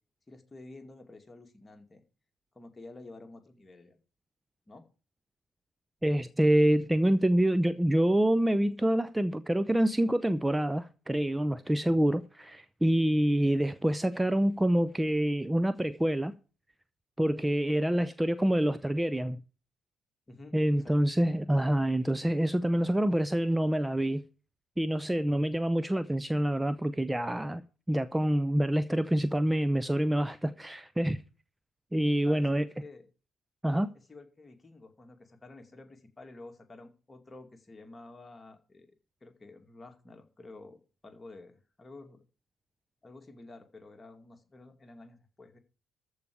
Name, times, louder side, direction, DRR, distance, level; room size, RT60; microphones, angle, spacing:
voice 1, 0.3-2.0 2.5-4.0 4.7-4.9 20.3-20.9 32.2-33.1 33.9-38.9 39.2-40.8 41.0-42.2 43.0-45.6, left 2 dB, 25° left, 2.4 m, -50 dB
voice 2, 6.0-16.3 17.2-19.4 20.5-24.2 24.8-27.6 27.9-31.2 31.9-32.7 33.6-33.9, right 1 dB, 10° right, 0.7 m, -26 dB
14.0 x 4.8 x 8.4 m
hypercardioid pair, 45°, 0 cm